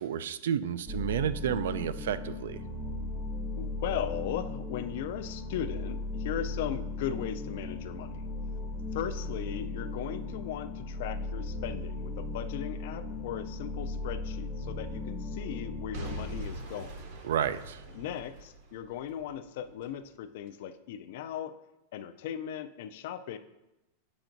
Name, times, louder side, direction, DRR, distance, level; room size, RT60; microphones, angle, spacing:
voice 1, 0.0-2.6 17.3-17.8, right 9 dB, 80° right, 14 dB, 0.3 m, -31 dB
sound 1, 0.9-16.4, left 2 dB, ahead, 0.6 m, -37 dB
voice 2, 3.6-8.3 8.9-17.0 17.9-21.6 21.9-23.4, left 10 dB, 50° left, 10 dB, 0.3 m, -38 dB
Boom / Shatter / Crushing, 15.9-19.9 20.5-20.6, right 1 dB, 45° right, 0.7 m, -43 dB
8.0 x 5.8 x 2.6 m, 0.96 s
supercardioid pair, 175°, 0 cm